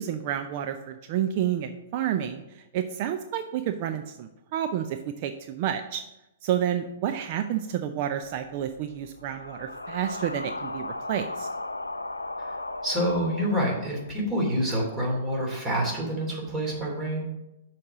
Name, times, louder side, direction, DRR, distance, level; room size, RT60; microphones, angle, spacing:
voice 1, 0.0-2.4 2.7-6.0 6.4-11.5, right 10 dB, 45° right, 7 dB, 0.4 m, -30 dB
sound 1, 8.2-14.4, left 2 dB, 90° left, 0.4 m, -37 dB
voice 2, 12.4-17.2, equal, 20° right, -3 dB, 3.0 m, -27 dB
6.5 x 4.2 x 6.0 m, 0.94 s
figure-of-eight pair, 110°, 0 cm